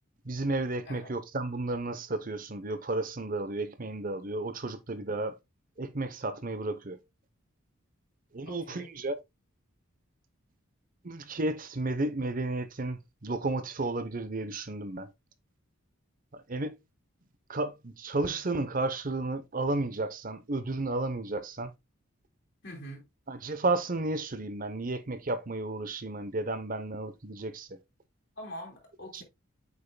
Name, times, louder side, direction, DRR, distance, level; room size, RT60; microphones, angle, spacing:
voice 1, 0.2-5.4 5.8-7.0 8.3-9.2 11.0-15.1 16.3-16.7 17.5-21.7 23.3-27.8 29.1-29.2, right 2 dB, 40° right, 0.8 m, -32 dB
voice 2, 8.5-8.9 22.6-23.0 28.4-29.2, equal, 55° left, 3.1 m, -44 dB
8.0 x 5.6 x 2.2 m
head